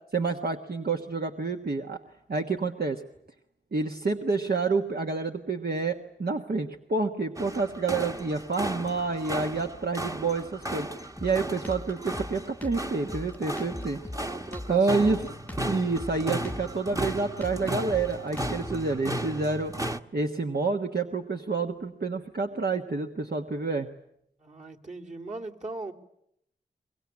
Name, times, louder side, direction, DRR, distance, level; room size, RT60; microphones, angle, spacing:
voice 1, 0.1-2.0 2.3-3.0 3.7-10.9 11.2-14.0 14.7-15.2 15.6-19.7 20.1-23.9, right 4 dB, 65° right, 3 dB, 1.4 m, -28 dB
sound 1, 7.4-20.0, right 1 dB, 20° right, 1.2 m, -35 dB
Drum kit, 11.2-18.8, left 1 dB, 10° left, 1.0 m, -40 dB
voice 2, 14.1-15.4 24.4-25.9, right 2 dB, 45° right, 0 dB, 2.7 m, -40 dB
24.0 x 22.5 x 9.7 m, 0.76 s
wide cardioid pair, 55°, 18 cm